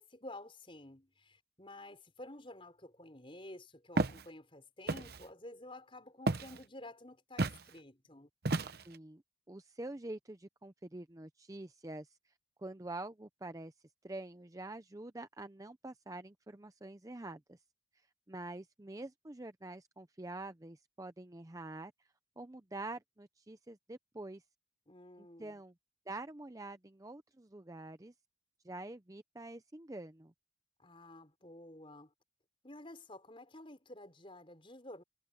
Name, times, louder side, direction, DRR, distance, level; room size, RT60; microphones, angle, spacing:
voice 1, 0.0-8.3 24.9-25.6 30.8-32.1 32.6-35.0, left 1 dB, 25° left, 5.7 m, -51 dB
Walk footsteps, 4.0-4.2 4.9-5.2 6.3-6.6 7.4-7.6 8.4-9.0, right 2 dB, 50° right, 0.9 m, -32 dB
voice 2, 8.8-9.2 9.5-12.2 12.6-13.7 14.0-17.6 18.3-21.9 22.4-24.4 25.4-25.7 26.1-28.1 28.6-30.3, right 2 dB, 15° right, 0.6 m, -46 dB
head